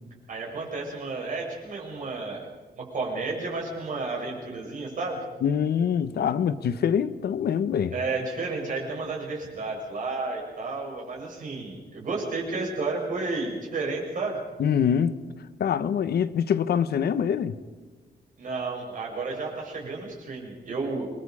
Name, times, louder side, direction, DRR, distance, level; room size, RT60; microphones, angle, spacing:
voice 1, 0.3-2.5 2.8-5.2 7.9-14.4 18.4-21.1, right 3 dB, 55° right, 7.4 m, -32 dB
voice 2, 5.4-7.9 14.6-15.2 15.6-17.6, left 8 dB, 80° left, 1.0 m, -24 dB
28.5 x 22.0 x 4.9 m
wide cardioid pair, 165°, 16 cm